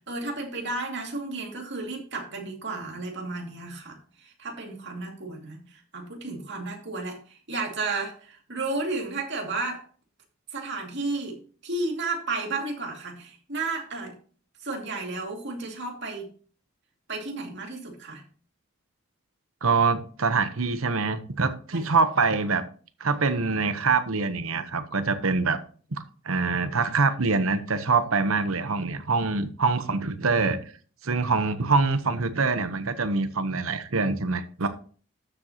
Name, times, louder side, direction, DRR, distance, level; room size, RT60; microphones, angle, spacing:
voice 1, 0.1-7.2 7.5-9.8 10.5-11.4 11.6-14.1 14.6-16.3 17.1-18.2 21.7-22.0, right 3 dB, 55° right, 2 dB, 2.5 m, -33 dB
voice 2, 19.6-22.6 23.0-25.6 25.9-30.6 31.0-34.7, right 4 dB, 80° right, 11 dB, 1.0 m, -25 dB
13.0 x 7.6 x 2.9 m, 0.42 s
head